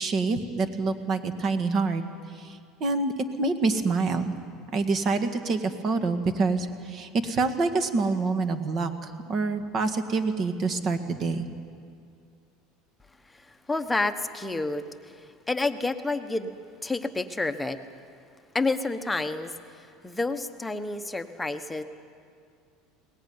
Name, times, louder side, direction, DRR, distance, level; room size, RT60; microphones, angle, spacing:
voice 1, 0.0-2.0 2.4-3.1 3.4-4.3 4.7-8.9 9.3-11.5, right 3 dB, 40° right, 8 dB, 1.8 m, -26 dB
voice 2, 13.3-16.5 16.8-17.8 18.5-21.8, left 2 dB, 10° left, 7 dB, 1.1 m, -30 dB
22.0 x 19.0 x 9.6 m, 2.3 s
supercardioid pair, 130°, 0 cm